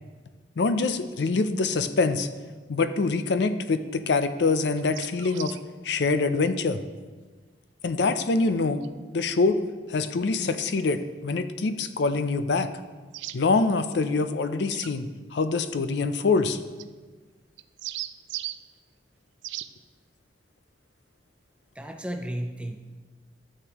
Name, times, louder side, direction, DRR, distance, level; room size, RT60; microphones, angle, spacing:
voice 1, 0.6-2.3 2.7-5.6 5.8-6.8 7.8-8.8 9.1-9.6 9.9-12.7 13.3-16.6, left 3 dB, 70° left, 11 dB, 0.5 m, -25 dB
sound 1, 4.8-5.6 8.8-8.9 13.1-13.4 14.7-14.9 16.8-16.9 17.6-18.6 19.4-19.7, right 14 dB, 80° right, 0.3 m, -36 dB
voice 2, 21.8-22.8, right 1 dB, 5° right, 6 dB, 0.5 m, -33 dB
13.0 x 6.7 x 3.0 m, 1.4 s
head